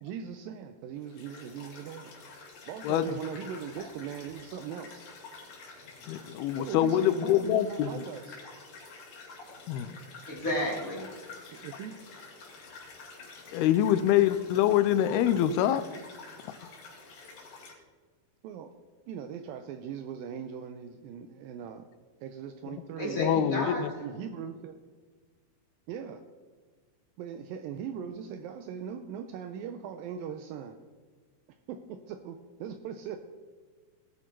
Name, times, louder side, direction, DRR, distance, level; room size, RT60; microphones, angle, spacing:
voice 1, 0.0-2.1 2.7-5.0 6.5-8.4 11.5-12.0 18.4-18.7 19.1-21.9 22.2-23.2 24.0-24.8 25.9-26.2 27.2-30.8 31.7-33.2, right 8 dB, 80° right, 7 dB, 2.2 m, -40 dB
sound 1, 1.0-17.7, left 4 dB, 65° left, 3.9 m, -48 dB
voice 2, 6.1-8.0 9.7-10.0 13.5-15.8 23.2-23.9, left 11 dB, 85° left, 13 dB, 2.6 m, -25 dB
voice 3, 10.3-11.1 23.0-24.1, equal, 20° left, -4 dB, 3.3 m, -32 dB
19.0 x 8.8 x 4.6 m, 1.5 s
omnidirectional pair, 4.5 m